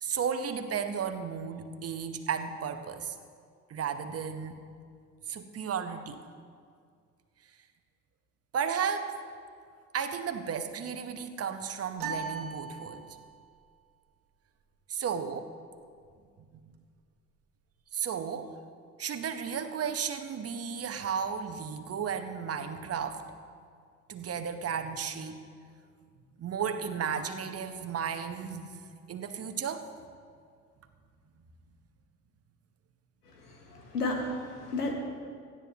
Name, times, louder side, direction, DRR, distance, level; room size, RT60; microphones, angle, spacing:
voice 1, 0.0-3.1 3.7-4.6 5.3-6.3 8.5-9.2 9.9-13.0 14.9-15.4 17.9-18.6 19.0-23.2 24.1-25.5 26.4-28.7 29.1-29.9, right 7 dB, 30° right, 8 dB, 1.2 m, -34 dB
sound 1, 12.0-13.5, right 5 dB, 45° right, 1.6 m, -38 dB
voice 2, 33.7-34.9, left 2 dB, 80° left, 1 dB, 1.9 m, -32 dB
17.5 x 13.5 x 3.0 m, 2.1 s
figure-of-eight pair, 60°, 46 cm